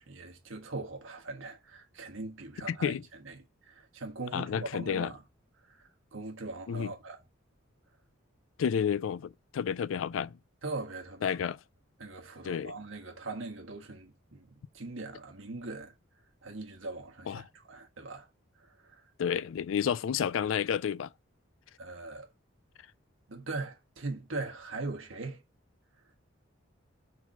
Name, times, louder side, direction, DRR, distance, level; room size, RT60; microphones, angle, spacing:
voice 1, 0.0-5.2 5.6-7.2 10.6-11.4 12.0-15.9 16.4-18.3 18.6-19.0 19.8-19.9 21.8-22.3 23.3-25.4, right 3 dB, 75° right, 1.4 m, -41 dB
voice 2, 2.7-3.0 4.3-5.1 6.7-6.9 8.6-10.3 11.2-11.6 12.4-12.7 17.3-17.4 19.2-21.1, left 7 dB, 70° left, 0.3 m, -30 dB
4.8 x 3.9 x 5.5 m
head